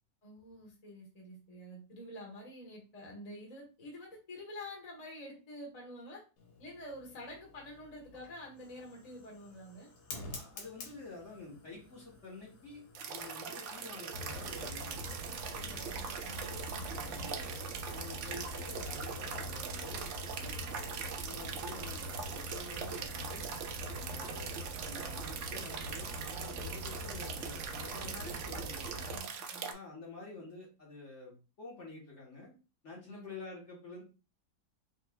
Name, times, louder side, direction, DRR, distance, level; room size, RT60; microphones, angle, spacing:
voice 1, 0.2-6.2 6.6-9.9 15.5-17.4 28.0-28.7 29.0-29.7 33.1-33.2, left 1 dB, 25° left, -1 dB, 1.2 m, -48 dB
Fire, 6.4-22.1, left 3 dB, 85° left, 1.7 m, -54 dB
voice 2, 10.3-15.0 16.9-17.6 17.9-23.4 23.9-24.5 24.8-29.1 29.7-32.5 32.8-34.0, left 3 dB, 45° left, -4 dB, 1.4 m, -49 dB
sound 1, 12.9-29.7, right 6 dB, 80° right, 0.6 m, -42 dB
sound 2, 14.1-29.2, right 1 dB, 60° right, 1.1 m, -44 dB
5.3 x 3.1 x 2.3 m, 0.32 s
omnidirectional pair, 1.9 m